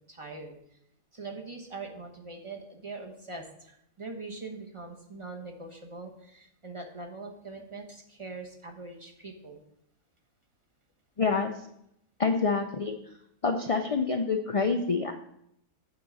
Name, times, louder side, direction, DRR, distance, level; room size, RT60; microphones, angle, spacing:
voice 1, 0.1-0.6 1.1-9.6, right 3 dB, 25° right, 1 dB, 1.0 m, -42 dB
voice 2, 11.2-11.5 12.2-12.9 13.4-15.1, left 4 dB, 55° left, 4 dB, 0.4 m, -27 dB
8.9 x 3.8 x 7.0 m, 0.75 s
omnidirectional pair, 1.4 m